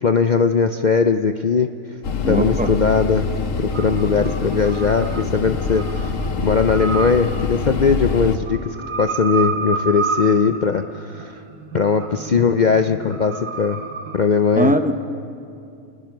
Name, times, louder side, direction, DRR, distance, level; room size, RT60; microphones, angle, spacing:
voice 1, 0.0-1.7 2.3-3.3 3.6-6.1 6.4-11.4 11.7-13.8 14.1-14.7, left 5 dB, 75° left, 7 dB, 0.4 m, -19 dB
sound 1, 2.0-8.4, left 4 dB, 60° left, 1.4 m, -25 dB
voice 2, 2.2-2.7 14.6-14.9, right 1 dB, 10° right, 6 dB, 0.6 m, -19 dB
sound 2, 3.7-14.2, right 4 dB, 85° right, 2.0 m, -30 dB
28.5 x 20.0 x 6.1 m, 2.5 s
omnidirectional pair, 1.6 m